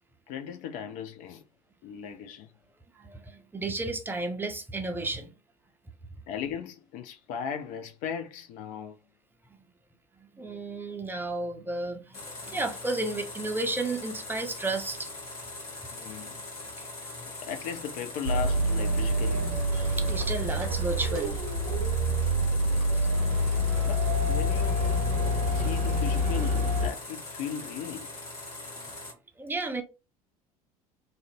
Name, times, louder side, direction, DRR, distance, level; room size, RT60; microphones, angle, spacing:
voice 1, 0.3-1.4 1.8-2.5 6.3-9.0 15.9-16.4 17.4-19.5 22.9-23.0 23.8-24.9 25.5-28.1, left 8 dB, 45° left, 0.4 m, -37 dB
voice 2, 3.0-5.3 9.5-9.7 10.2-15.1 16.8-16.9 19.7-21.4 21.7-22.0 28.7-28.9 29.4-29.8, right 2 dB, 10° right, 0.5 m, -33 dB
sound 1, 12.1-29.1, left 2 dB, 80° left, 1.0 m, -41 dB
sound 2, 18.2-26.9, equal, 70° right, 0.7 m, -26 dB
2.5 x 2.0 x 2.7 m
figure-of-eight pair, 65°, 19 cm